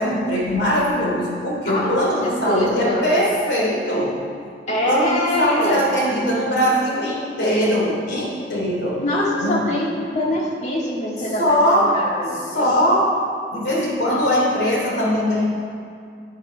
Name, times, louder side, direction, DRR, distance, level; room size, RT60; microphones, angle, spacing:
voice 1, 0.0-4.1 4.7-9.0 9.4-9.7 11.2-11.9 12.3-13.1 13.5-15.4, equal, 70° left, -3 dB, 2.9 m, -21 dB
voice 2, 2.2-3.0 4.7-5.8 9.0-12.8, left 1 dB, 40° left, -3 dB, 2.0 m, -24 dB
9.7 x 9.3 x 5.1 m, 2.3 s
head